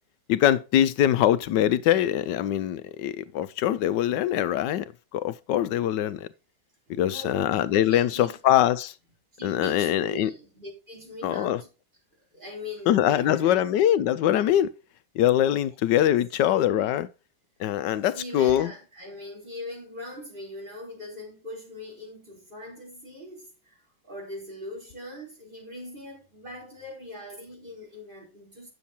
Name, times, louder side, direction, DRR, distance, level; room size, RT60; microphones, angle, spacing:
voice 1, 0.3-6.3 7.0-8.9 9.4-10.3 11.2-11.6 12.9-14.7 15.2-17.1 17.6-18.7, left 11 dB, 85° left, 1.3 m, -23 dB
voice 2, 6.9-8.4 9.3-11.7 12.3-13.7 15.6-15.7 18.1-28.7, left 1 dB, 30° right, 4.4 m, -41 dB
9.3 x 7.0 x 4.3 m
omnidirectional pair, 1.9 m